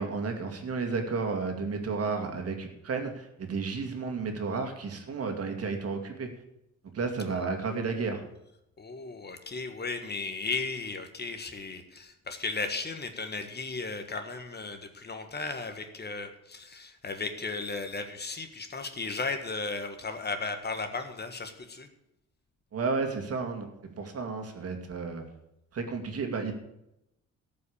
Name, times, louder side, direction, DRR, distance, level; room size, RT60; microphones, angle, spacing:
voice 1, 0.0-6.3 6.9-8.3 22.7-23.7 24.0-25.2 25.7-26.5, right 4 dB, 50° right, 5 dB, 2.2 m, -32 dB
voice 2, 7.3-8.0 8.8-21.9, left 3 dB, 35° left, 7 dB, 1.5 m, -35 dB
13.5 x 5.6 x 8.6 m, 0.84 s
cardioid pair, 90°, 30 cm